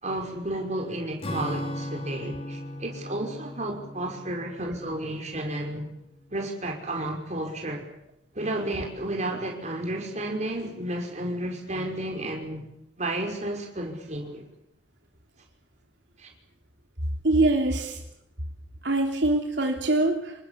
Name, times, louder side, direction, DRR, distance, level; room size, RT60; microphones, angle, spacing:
voice 1, 0.0-5.9 6.3-7.9 8.3-12.7 13.0-14.5 16.2-16.3, right 1 dB, 40° right, 2 dB, 5.5 m, -32 dB
Acoustic guitar / Strum, 1.2-6.0, left 1 dB, 35° left, 4.5 m, -37 dB
voice 2, 17.2-18.0 18.8-20.3, right 2 dB, 75° right, 2 dB, 3.3 m, -23 dB
27.5 x 20.0 x 8.6 m, 0.77 s
head